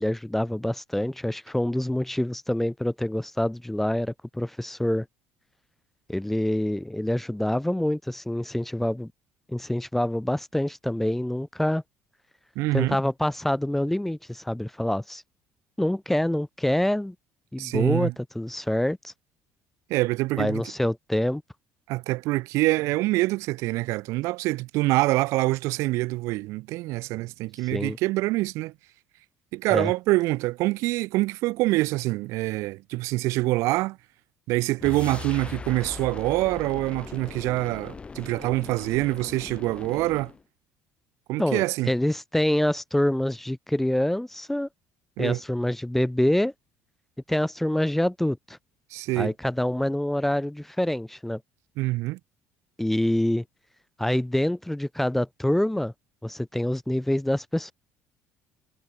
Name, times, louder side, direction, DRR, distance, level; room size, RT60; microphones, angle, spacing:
voice 1, 0.0-5.1 6.1-9.1 9.5-11.8 12.7-15.2 15.8-17.2 17.5-19.1 20.4-21.4 27.7-28.0 29.7-29.9 41.4-44.7 45.2-46.5 47.3-48.6 49.2-51.4 52.8-53.4 54.0-55.9 56.2-57.7, left 1 dB, 5° left, 0.3 m, -26 dB
voice 2, 12.6-13.0 17.6-18.1 19.9-20.6 21.9-28.7 29.5-34.0 34.5-40.3 41.3-41.9 45.2-45.4 48.9-49.3 51.8-52.2, right 20 dB, 75° right, 0.3 m, -25 dB
sound 1, 34.8-40.4, left 4 dB, 20° left, 1.1 m, -39 dB
cardioid pair, 120°, 5 cm